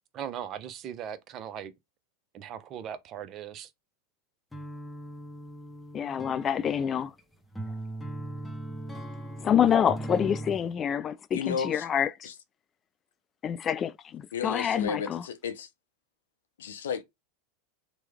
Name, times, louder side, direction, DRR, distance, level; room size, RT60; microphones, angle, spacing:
voice 1, 0.1-1.7 2.3-3.7, right 9 dB, 40° right, 0.6 m, -39 dB
sound 1, 4.5-10.6, right 1 dB, 10° left, 0.8 m, -39 dB
voice 2, 5.9-7.1 9.4-12.3 13.4-15.2, left 8 dB, 30° left, 0.4 m, -27 dB
voice 3, 11.3-11.8 12.2-12.3 14.3-15.7 16.6-17.0, left 7 dB, 80° left, 0.6 m, -33 dB
3.0 x 2.2 x 3.3 m
hypercardioid pair, 95°, 0 cm